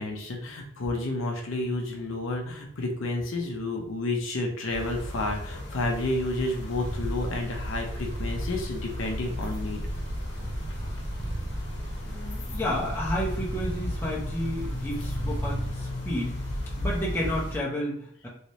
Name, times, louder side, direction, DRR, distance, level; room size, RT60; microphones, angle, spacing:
voice 1, 0.0-9.8, left 2 dB, 80° left, 2 dB, 0.7 m, -30 dB
sound 1, 4.7-17.6, left 1 dB, 65° left, 1.0 m, -35 dB
sound 2, 6.9-15.8, right 1 dB, 55° right, 0.6 m, -36 dB
voice 2, 12.0-16.4 16.8-18.3, equal, 10° left, -6 dB, 0.9 m, -31 dB
3.1 x 3.1 x 2.8 m, 0.67 s
head